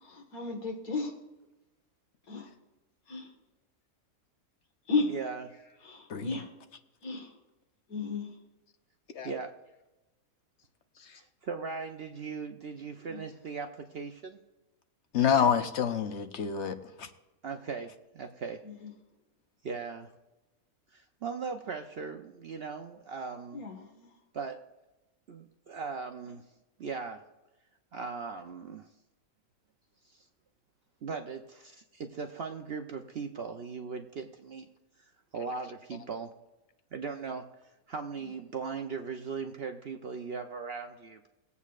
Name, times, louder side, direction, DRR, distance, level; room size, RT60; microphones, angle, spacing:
voice 1, 0.0-1.2 2.3-2.5 3.1-3.3 4.9-5.2 5.8-6.5 7.0-7.3 7.9-8.3 13.1-13.2 18.6-18.9 23.5-24.1 38.2-38.3, left 3 dB, 75° left, 2.1 m, -34 dB
voice 2, 5.1-5.5 9.2-9.5 11.0-14.4 17.4-18.6 19.6-20.1 20.9-23.6 24.3-24.6 25.3-26.4 26.8-27.2 27.9-28.9 30.1-30.2 31.0-34.7 35.3-36.3 36.9-37.5 37.9-41.3, right 5 dB, 55° right, 0.7 m, -38 dB
voice 3, 15.1-17.1, left 8 dB, 55° left, 1.0 m, -27 dB
20.0 x 8.3 x 2.4 m
omnidirectional pair, 1.6 m